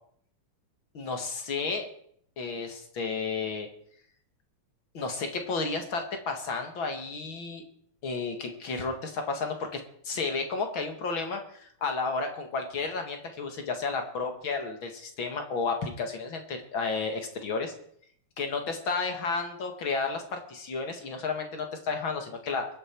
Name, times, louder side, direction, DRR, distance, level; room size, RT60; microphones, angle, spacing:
voice 1, 0.9-1.9 2.4-3.7 4.9-7.6 8.0-17.7 18.4-22.7, left 4 dB, 45° left, 4 dB, 2.3 m, -32 dB
23.0 x 9.0 x 4.6 m, 0.63 s
omnidirectional pair, 3.4 m